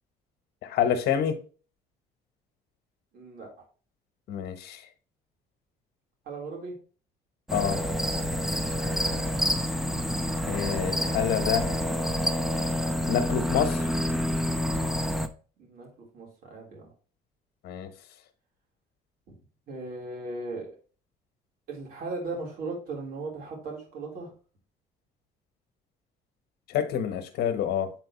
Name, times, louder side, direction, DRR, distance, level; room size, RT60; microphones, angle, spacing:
voice 1, 0.6-1.4 4.3-4.8 7.5-7.9 10.5-11.8 13.1-13.9 17.6-17.9 26.7-27.9, left 9 dB, 75° left, 1.1 m, -27 dB
voice 2, 3.1-3.5 6.3-6.7 15.6-15.9 16.1-16.9 19.7-20.8 21.7-24.3, right 3 dB, 65° right, 3.7 m, -37 dB
sound 1, 7.5-15.3, equal, ahead, 0.6 m, -28 dB
7.6 x 4.4 x 3.0 m
cardioid pair, 110°, 17 cm